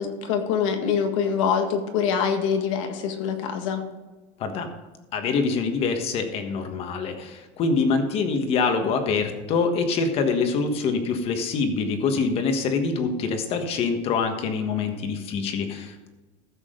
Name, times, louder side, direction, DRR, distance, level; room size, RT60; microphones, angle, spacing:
voice 1, 0.0-3.8, left 7 dB, 85° left, 5 dB, 1.7 m, -24 dB
voice 2, 5.1-16.1, left 4 dB, 40° left, 6 dB, 1.4 m, -25 dB
14.0 x 7.4 x 3.8 m, 1.2 s
cardioid pair, 165°, 16 cm